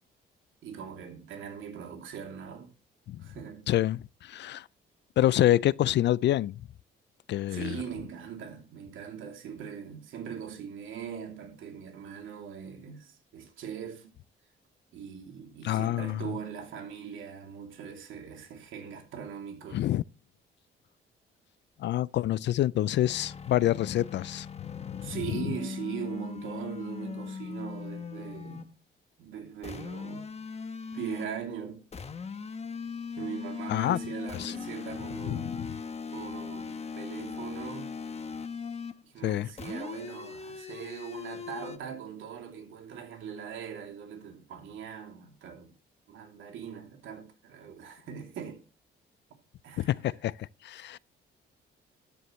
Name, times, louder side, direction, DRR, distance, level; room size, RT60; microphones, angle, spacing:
voice 1, 0.6-2.7 3.2-3.7 7.5-14.1 14.9-19.9 25.0-28.7 29.2-30.4 30.9-31.8 33.2-35.6 36.1-37.9 39.0-45.8 46.1-48.6 49.6-49.9, right 7 dB, 80° right, 2.9 m, -40 dB
voice 2, 3.7-4.7 5.2-6.5 7.3-7.8 15.6-16.3 19.7-20.0 21.8-25.6 33.7-34.0 34.3-34.5 35.2-35.7 39.2-39.5 49.8-51.0, left 13 dB, 60° left, 0.4 m, -27 dB
sound 1, 23.0-28.7 29.6-31.4 31.9-39.0 39.6-41.8, left 5 dB, 30° left, 1.1 m, -39 dB
12.5 x 9.7 x 3.2 m
cardioid pair, 90°, 20 cm